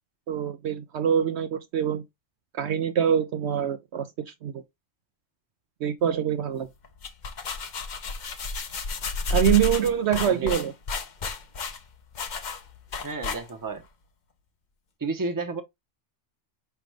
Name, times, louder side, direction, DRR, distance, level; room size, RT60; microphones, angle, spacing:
voice 1, 0.3-2.0 2.6-4.6 5.8-6.7 9.3-10.7, right 9 dB, 65° right, 0.8 m, -25 dB
sound 1, 6.8-13.8, left 3 dB, 45° left, 0.7 m, -31 dB
voice 2, 13.0-13.8 15.0-15.6, right 3 dB, 20° right, 0.8 m, -31 dB
5.0 x 3.4 x 3.1 m
omnidirectional pair, 1.3 m